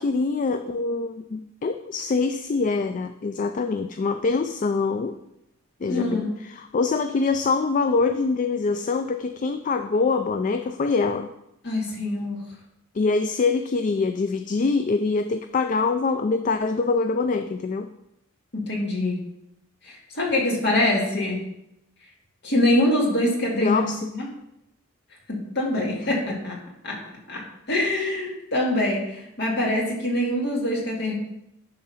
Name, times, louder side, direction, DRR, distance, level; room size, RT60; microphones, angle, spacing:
voice 1, 0.0-5.2 5.8-11.3 12.9-17.9 23.5-24.1, left 4 dB, 35° left, 8 dB, 0.3 m, -24 dB
voice 2, 5.9-6.3 11.6-12.4 18.5-19.2 19.8-21.4 22.4-24.3 25.3-26.6 26.8-27.0 27.3-27.4 27.7-31.1, left 1 dB, 55° left, -2 dB, 2.1 m, -24 dB
10.5 x 3.8 x 5.7 m, 0.84 s
head